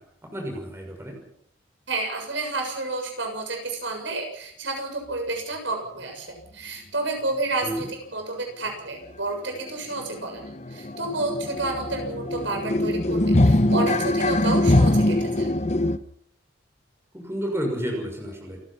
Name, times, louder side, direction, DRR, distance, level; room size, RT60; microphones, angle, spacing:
voice 1, 0.2-1.2 7.6-7.9 17.1-18.6, equal, 15° right, 1 dB, 6.3 m, -31 dB
voice 2, 1.9-10.4 10.7-15.5, right 2 dB, 70° right, 3 dB, 7.1 m, -30 dB
sound 1, 9.1-9.2 9.5-9.7 9.9-16.0, left 1 dB, 35° left, 0.9 m, -22 dB
29.0 x 16.5 x 5.9 m, 0.69 s
head